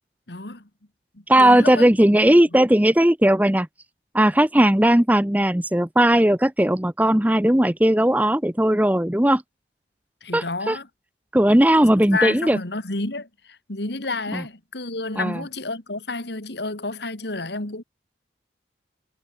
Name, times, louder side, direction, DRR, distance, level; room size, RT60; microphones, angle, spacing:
voice 1, 0.3-0.7 1.1-2.3 10.2-10.9 12.1-17.8, left 3 dB, 70° left, 2.7 m, -30 dB
voice 2, 1.3-3.7 4.1-9.4 10.3-10.8 11.3-12.6 14.3-14.4 15.2-15.4, right 1 dB, 10° right, 0.8 m, -17 dB
head